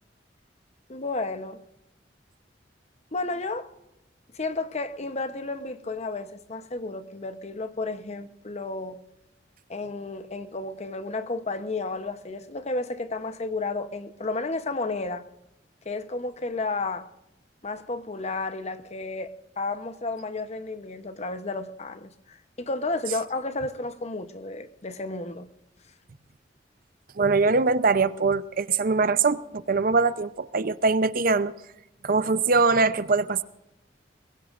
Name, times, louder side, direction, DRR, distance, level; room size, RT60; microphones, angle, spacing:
voice 1, 0.9-1.6 3.1-3.7 4.3-9.0 9.7-15.2 15.8-17.1 17.6-25.5, left 3 dB, 40° left, 0.9 m, -32 dB
voice 2, 27.2-31.5 32.0-33.4, right 4 dB, 55° right, 0.7 m, -22 dB
22.0 x 21.0 x 2.6 m
head